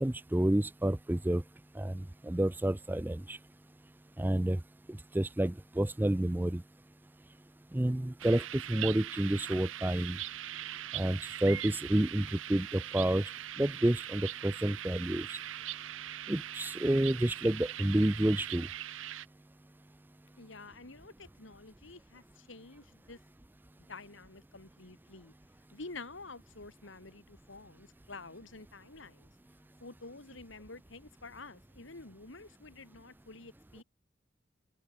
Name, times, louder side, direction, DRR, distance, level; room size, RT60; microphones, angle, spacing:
voice 1, 0.0-1.4 1.8-3.4 4.2-4.6 5.1-6.6 7.7-10.2 10.9-13.2 13.6-15.4 16.3-18.7, right 1 dB, 10° right, 0.4 m, -29 dB
sound 1, 8.2-19.3, right 12 dB, 90° right, 0.6 m, -41 dB
voice 2, 20.4-23.2 23.8-25.3 25.7-29.3 29.8-33.8, left 3 dB, 80° left, 2.4 m, -49 dB
head